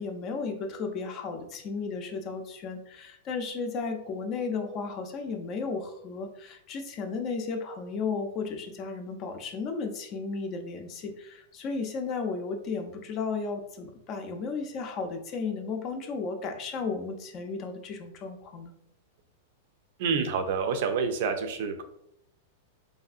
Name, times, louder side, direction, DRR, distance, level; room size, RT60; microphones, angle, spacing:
voice 1, 0.0-18.7, left 4 dB, 35° left, 5 dB, 0.5 m, -34 dB
voice 2, 20.0-21.8, right 5 dB, 60° right, 7 dB, 0.5 m, -28 dB
3.2 x 2.7 x 2.4 m, 0.74 s
supercardioid pair, 145°, 0 cm